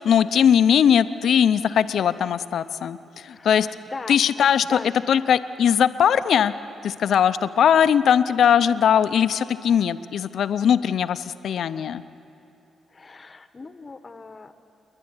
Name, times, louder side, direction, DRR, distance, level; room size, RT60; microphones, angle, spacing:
voice 1, 0.0-3.7 4.1-4.8 5.1-6.5 6.8-12.0, left 8 dB, 75° left, 12 dB, 0.6 m, -20 dB
voice 2, 3.3-4.2 4.6-5.2 12.9-14.5, left 4 dB, 35° left, 10 dB, 1.1 m, -39 dB
28.0 x 11.0 x 9.6 m, 2.9 s
cardioid pair, 80°, 0 cm